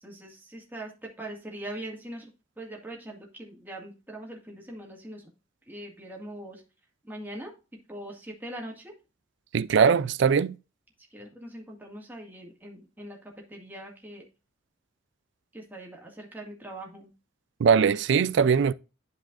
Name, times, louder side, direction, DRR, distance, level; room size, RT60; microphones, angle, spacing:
voice 1, 0.0-2.3 2.6-5.2 5.7-6.6 7.0-7.5 7.9-8.9 11.1-14.2 15.5-17.1, right 1 dB, 10° right, 2.0 m, -41 dB
voice 2, 9.5-10.6 17.6-18.7, right 6 dB, 65° right, 0.4 m, -21 dB
11.5 x 4.9 x 2.5 m
head